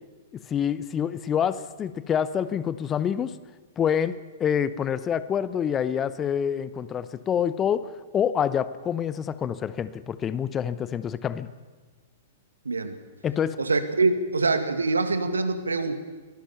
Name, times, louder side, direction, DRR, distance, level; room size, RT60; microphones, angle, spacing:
voice 1, 0.3-3.4 3.8-11.5 13.2-13.6, left 8 dB, 25° left, 15 dB, 0.9 m, -27 dB
voice 2, 12.6-12.9 13.6-15.9, right 3 dB, 80° right, 10 dB, 2.1 m, -24 dB
24.5 x 18.5 x 7.1 m, 1.3 s
figure-of-eight pair, 110°, 0 cm